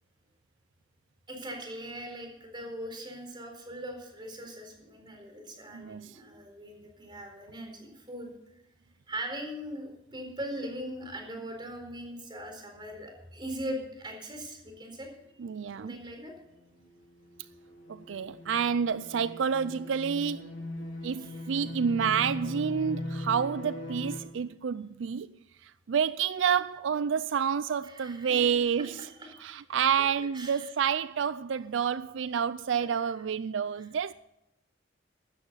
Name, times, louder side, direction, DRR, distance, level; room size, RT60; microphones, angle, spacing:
voice 1, 1.3-8.3 9.1-15.1 15.7-16.3 21.2-21.3 27.8-28.5 29.2-29.4 30.3-30.7 32.8-32.9, equal, 25° right, 4.3 m, -40 dB
voice 2, 5.7-6.2 15.4-16.0 17.9-20.5 21.0-25.4 25.6-29.1 29.4-34.1, right 7 dB, 80° right, 0.4 m, -29 dB
sound 1, 15.4-24.2, left 1 dB, 90° left, 3.7 m, -41 dB
15.5 x 12.5 x 4.0 m
head